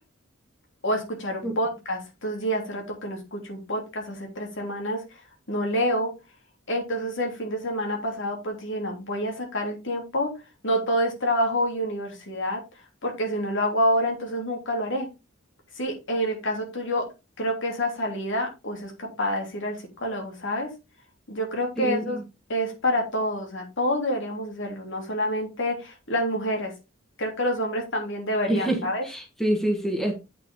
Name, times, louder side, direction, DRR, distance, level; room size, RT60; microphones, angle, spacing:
voice 1, 0.8-5.0 5.5-6.1 6.7-10.3 10.6-12.6 13.0-15.1 15.7-17.0 17.4-20.7 21.3-22.2 22.5-26.7 27.2-29.0, equal, 65° left, 1 dB, 3.3 m, -27 dB
voice 2, 21.8-22.2 28.5-30.1, right 1 dB, ahead, 1 dB, 1.8 m, -27 dB
8.3 x 6.5 x 3.8 m, 0.27 s
head